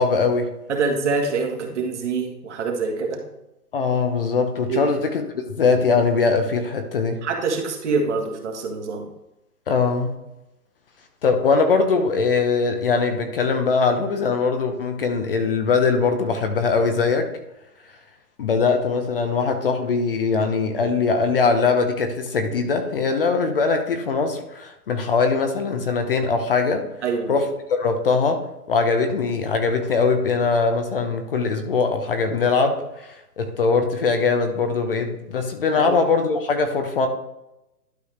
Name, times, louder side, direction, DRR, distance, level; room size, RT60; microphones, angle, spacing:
voice 1, 0.0-0.5 3.7-7.2 9.7-10.1 11.2-17.3 18.4-26.9 27.3-37.1, left 4 dB, 35° left, 6 dB, 0.9 m, -21 dB
voice 2, 0.7-3.2 4.7-4.9 7.2-9.1 27.0-27.4 35.7-36.0, right 4 dB, 50° right, 2 dB, 1.7 m, -25 dB
11.5 x 4.7 x 3.3 m, 0.92 s
hypercardioid pair, 155°, 46 cm